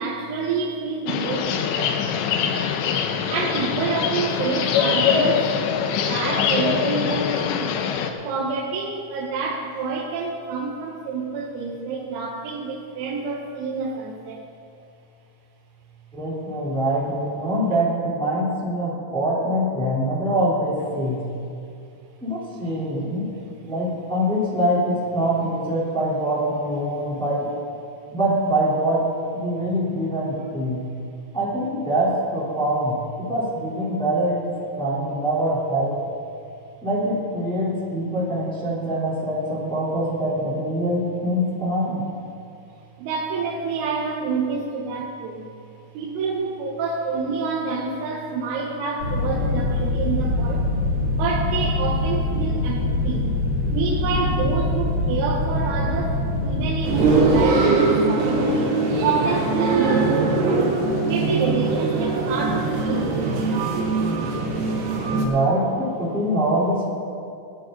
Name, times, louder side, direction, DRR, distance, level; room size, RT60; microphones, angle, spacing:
voice 1, 0.0-2.1 3.3-5.7 6.0-7.9 8.2-14.5 43.0-45.5 45.9-50.7 51.1-53.3 53.7-60.8 61.1-63.7, right 4 dB, 90° right, -4 dB, 4.0 m, -28 dB
sound 1, 1.1-8.1, left 7 dB, 80° left, 2.6 m, -23 dB
voice 2, 16.1-21.2 22.2-23.3 23.6-27.5 28.1-29.0 29.3-30.8 31.3-34.4 34.8-36.0 36.8-42.0 65.1-66.9, right 1 dB, ahead, -8 dB, 2.3 m, -24 dB
sound 2, 49.0-57.4, left 2 dB, 30° right, 3.2 m, -24 dB
sound 3, 56.8-65.2, right 3 dB, 65° right, 3.3 m, -21 dB
18.5 x 11.5 x 4.0 m, 2.5 s
omnidirectional pair, 5.9 m